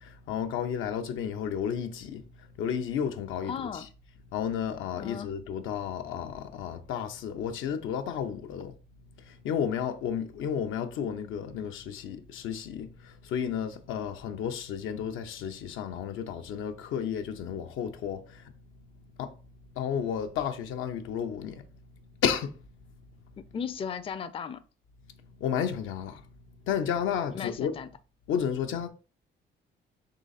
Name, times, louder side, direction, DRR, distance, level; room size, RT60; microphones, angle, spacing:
voice 1, 0.0-3.9 4.3-8.7 9.2-18.5 19.2-19.4 19.7-21.7 22.2-22.7 25.2-26.2 26.6-27.8 28.3-28.9, left 8 dB, 85° left, 0.6 m, -32 dB
voice 2, 3.5-3.9 4.9-5.3 23.4-24.6 27.3-27.9, left 7 dB, 30° left, 0.4 m, -36 dB
3.8 x 3.1 x 4.0 m
cardioid pair, 90°, 20 cm